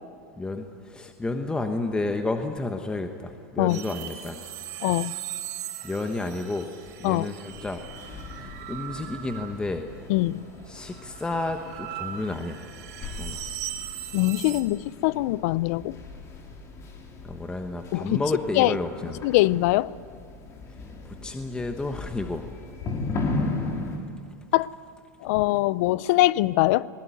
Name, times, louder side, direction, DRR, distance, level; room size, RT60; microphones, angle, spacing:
voice 1, 0.4-4.4 5.8-6.7 7.0-7.8 8.3-9.9 10.7-12.6 13.2-13.4 17.2-19.2 21.0-22.5, left 2 dB, 10° left, 1.2 m, -31 dB
sound 1, 3.7-10.0 10.3-14.6, right 12 dB, 70° right, 3.9 m, -39 dB
voice 2, 4.8-5.1 7.0-7.3 10.1-10.4 14.1-16.0 17.9-18.2 18.6-18.7 19.2-19.9 24.5-24.7 25.2-26.9, left 18 dB, 60° left, 0.6 m, -22 dB
sound 2, 7.5-24.0, left 3 dB, 30° left, 3.5 m, -37 dB
20.0 x 20.0 x 9.3 m
hypercardioid pair, 120°, 9 cm